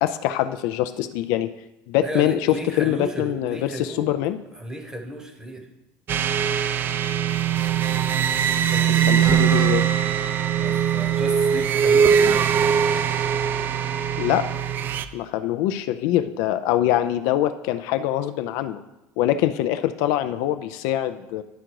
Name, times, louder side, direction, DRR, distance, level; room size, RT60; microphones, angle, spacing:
voice 1, 0.0-1.5 1.9-4.4 8.9-9.9 14.2-14.5 15.1-18.8 19.2-21.4, left 12 dB, 70° left, 10 dB, 0.4 m, -24 dB
voice 2, 2.0-4.1 4.5-5.7 8.5-9.1 10.6-12.5, right 1 dB, 10° right, 4 dB, 0.9 m, -34 dB
sound 1, 6.1-15.0, right 8 dB, 35° right, 0.3 m, -21 dB
10.0 x 3.8 x 4.6 m, 0.93 s
cardioid pair, 150°, 6 cm